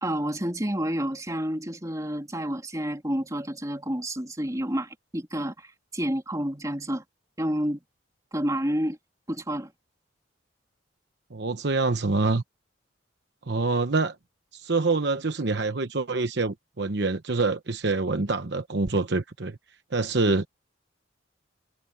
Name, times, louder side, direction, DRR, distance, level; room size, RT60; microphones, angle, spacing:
voice 1, 0.0-7.0 7.4-7.8 8.3-9.0 9.3-9.7, equal, 20° right, 3.3 m, -29 dB
voice 2, 11.3-12.4 13.5-14.2 14.5-19.6 19.9-20.5, right 3 dB, 60° right, 1.0 m, -26 dB
head